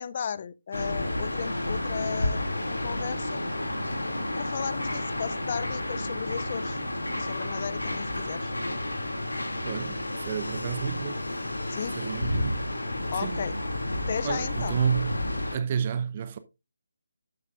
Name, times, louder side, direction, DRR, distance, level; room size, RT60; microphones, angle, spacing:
voice 1, 0.0-3.4 4.4-6.8 7.1-8.5 11.7-12.0 13.1-13.6 14.1-14.8, left 7 dB, 40° left, 0.6 m, -35 dB
sound 1, 0.7-15.6, left 1 dB, 85° left, 2.4 m, -31 dB
voice 2, 9.6-11.2 12.0-12.7 13.2-13.4 14.2-15.3 15.5-16.4, right 7 dB, 35° right, 0.8 m, -30 dB
11.5 x 8.0 x 2.4 m
figure-of-eight pair, 150°, 0 cm